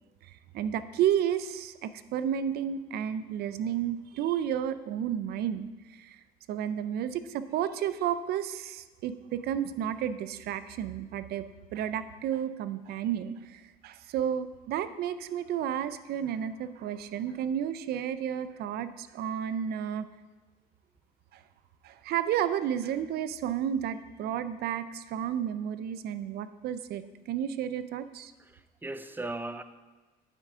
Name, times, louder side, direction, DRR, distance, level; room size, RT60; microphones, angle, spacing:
voice 1, 0.2-6.2 6.5-11.4 11.7-20.1 21.3-21.4 21.8-28.3, right 9 dB, 70° right, 13 dB, 0.5 m, -32 dB
voice 2, 28.4-29.6, right 2 dB, 10° right, 11 dB, 0.5 m, -38 dB
9.0 x 8.3 x 3.7 m, 1.2 s
cardioid pair, 110°, 17 cm